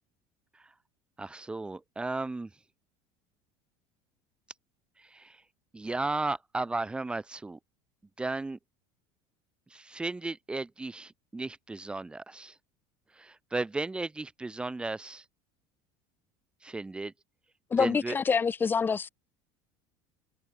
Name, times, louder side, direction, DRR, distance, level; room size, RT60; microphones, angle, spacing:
voice 1, 1.2-2.5 5.0-5.4 5.7-7.6 8.2-8.6 9.7-12.5 13.2-15.2 16.6-17.1 17.8-18.2, right 2 dB, 10° right, 3.9 m, -35 dB
voice 2, 17.7-19.1, left 5 dB, 15° left, 4.6 m, -26 dB
cardioid pair, 175°, 12 cm